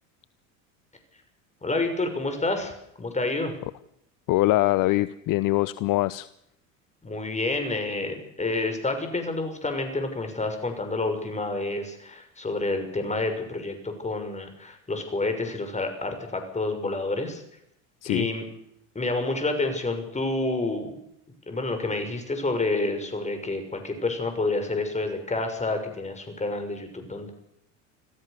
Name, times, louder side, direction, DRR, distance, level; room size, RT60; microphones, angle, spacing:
voice 1, 1.6-2.7 3.0-3.5 7.0-17.4 18.0-18.4 18.9-21.0 21.5-27.3, left 2 dB, 15° left, 6 dB, 6.6 m, -29 dB
voice 2, 4.3-6.3 18.0-18.3, left 17 dB, 55° left, 17 dB, 0.8 m, -23 dB
26.5 x 16.0 x 6.9 m, 0.76 s
supercardioid pair, 90°, 39 cm